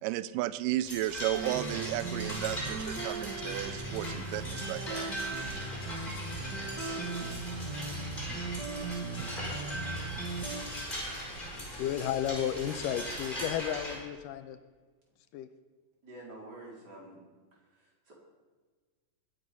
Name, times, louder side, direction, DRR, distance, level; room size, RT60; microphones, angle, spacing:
voice 1, 0.0-5.1 9.2-9.3, right 15 dB, 80° right, 15 dB, 2.1 m, -34 dB
sound 1, 0.8-14.0, equal, 15° left, 4.4 m, -39 dB
sound 2, 1.3-10.6, right 3 dB, 50° right, 1.3 m, -38 dB
voice 2, 11.5-14.6 15.3-15.5, left 10 dB, 85° left, 11 dB, 2.3 m, -33 dB
voice 3, 16.0-17.1 18.1-18.2, right 2 dB, 30° right, -4 dB, 4.7 m, -47 dB
21.0 x 8.5 x 5.5 m, 1.4 s
omnidirectional pair, 3.8 m